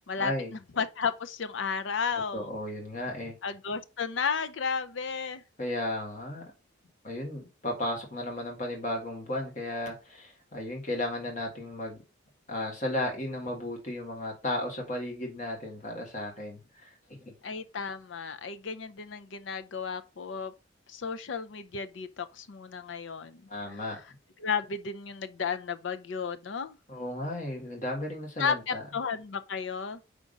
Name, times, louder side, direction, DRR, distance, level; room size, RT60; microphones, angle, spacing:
voice 1, 0.2-0.5 2.3-3.3 5.6-6.4 7.0-12.0 12.5-17.3 23.5-24.0 26.9-28.8, left 1 dB, 40° left, 1.7 m, -34 dB
voice 2, 0.8-2.5 3.4-5.4 17.4-20.5 20.9-23.8 24.4-26.8 28.4-30.0, left 6 dB, 70° left, 0.5 m, -33 dB
5.1 x 3.6 x 5.2 m
head